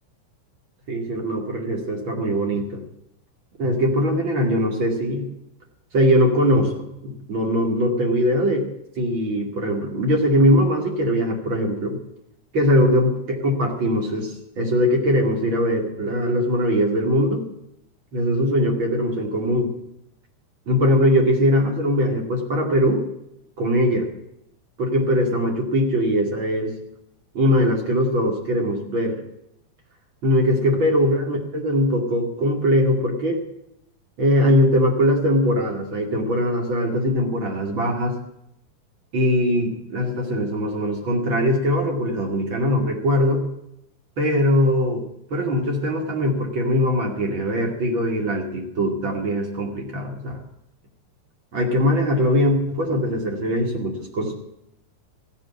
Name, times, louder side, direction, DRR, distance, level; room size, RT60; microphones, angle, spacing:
voice 1, 0.9-2.8 3.6-5.3 5.9-8.7 9.0-12.0 12.5-17.5 18.1-19.7 20.7-23.0 23.6-24.1 24.8-26.8 27.3-29.2 30.2-33.4 34.2-38.2 39.1-43.4 44.2-45.0 45.3-50.4 51.5-54.3, equal, 35° right, 1 dB, 2.4 m, -21 dB
15.5 x 9.0 x 8.3 m, 0.80 s
omnidirectional pair, 5.1 m